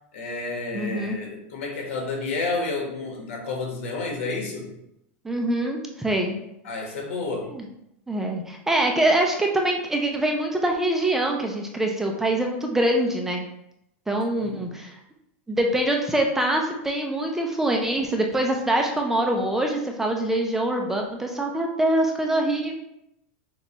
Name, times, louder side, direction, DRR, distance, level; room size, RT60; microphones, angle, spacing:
voice 1, 0.1-4.7 6.6-7.5 14.4-14.8, left 3 dB, 85° left, 1 dB, 1.3 m, -30 dB
voice 2, 0.7-1.2 5.2-6.3 7.5-7.6 8.1-13.5 14.1-14.9 15.5-22.7, right 1 dB, 5° right, 1 dB, 0.4 m, -24 dB
6.5 x 2.3 x 2.9 m, 0.80 s
supercardioid pair, 160°, 7 cm